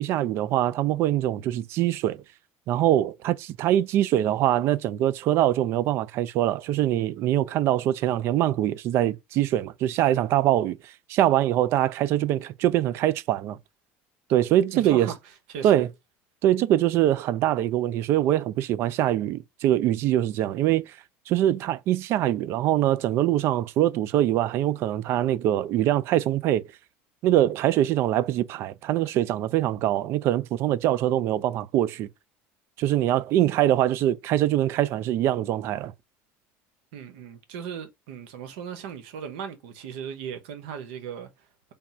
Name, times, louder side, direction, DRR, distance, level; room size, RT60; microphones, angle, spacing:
voice 1, 0.0-2.2 2.7-13.6 14.3-15.1 15.6-15.9 16.4-20.9 21.3-26.6 27.2-32.1 32.8-35.9, right 12 dB, 50° right, 0.4 m, -23 dB
voice 2, 14.7-15.2 15.5-15.9 36.9-41.5, right 7 dB, 85° right, 1.0 m, -37 dB
3.5 x 2.4 x 4.2 m
cardioid pair, 150°, 6 cm